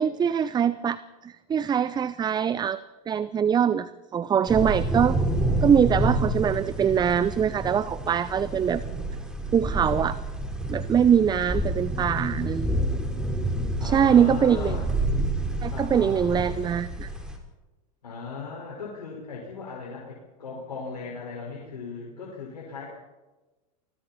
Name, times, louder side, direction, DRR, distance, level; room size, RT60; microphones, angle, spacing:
voice 1, 0.0-2.8 3.1-5.2 5.6-8.8 9.5-10.2 10.7-12.8 13.8-14.8 15.6-17.1, right 8 dB, 20° right, 16 dB, 0.7 m, -23 dB
sound 1, 4.5-17.4, right 1 dB, 5° right, 4.2 m, -29 dB
voice 2, 13.8-15.0 15.7-16.6 18.0-22.9, left 4 dB, 90° left, -3 dB, 5.1 m, -37 dB
28.5 x 21.5 x 4.3 m, 1.1 s
hypercardioid pair, 100°, 20 cm